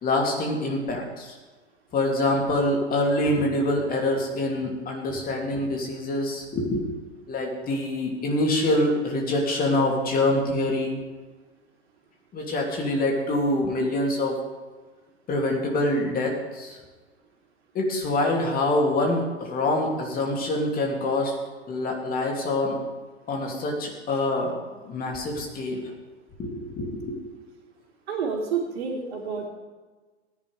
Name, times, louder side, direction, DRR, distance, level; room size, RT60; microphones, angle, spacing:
voice 1, 0.0-1.3 1.9-6.8 7.3-11.0 12.3-14.4 15.3-16.8 17.7-21.3 21.7-22.8 23.3-24.6 24.8-25.9 26.4-27.2, left 1 dB, 25° left, 0 dB, 2.7 m, -25 dB
voice 2, 28.1-29.5, right 5 dB, 60° right, 0 dB, 3.2 m, -29 dB
18.5 x 10.5 x 3.4 m, 1.3 s
figure-of-eight pair, 95°, 35 cm